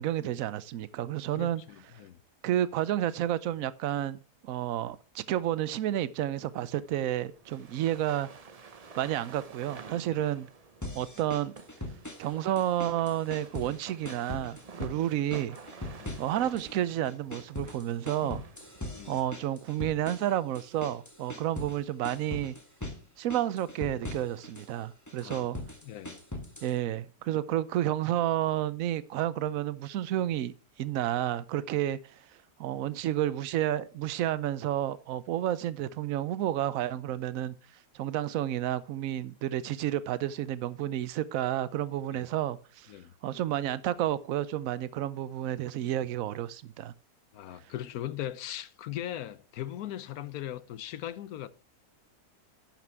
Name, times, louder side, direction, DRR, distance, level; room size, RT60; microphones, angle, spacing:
voice 1, 0.0-1.6 2.4-4.2 4.4-8.3 9.0-10.5 10.9-11.5 12.2-15.6 16.2-18.4 19.1-22.6 23.2-25.6 26.6-30.5 30.8-32.2 32.6-37.5 37.9-42.9 43.2-46.9, right 12 dB, 65° right, 1.0 m, -30 dB
voice 2, 1.3-2.2 10.1-10.2 16.0-16.2 18.2-18.3 18.9-19.2 25.2-25.5 25.8-26.2 32.7-32.8 42.1-42.2 42.9-43.1 47.3-51.5, left 12 dB, 70° left, 1.1 m, -39 dB
sound 1, 6.4-19.1, right 4 dB, 40° right, 0.5 m, -50 dB
sound 2, 10.8-12.3 12.6-13.8 14.0-15.0 15.3-16.8 17.0-21.8 22.0-23.0 23.3-24.7 25.1-26.8, left 1 dB, 10° left, 1.3 m, -40 dB
11.0 x 6.0 x 4.6 m
omnidirectional pair, 1.7 m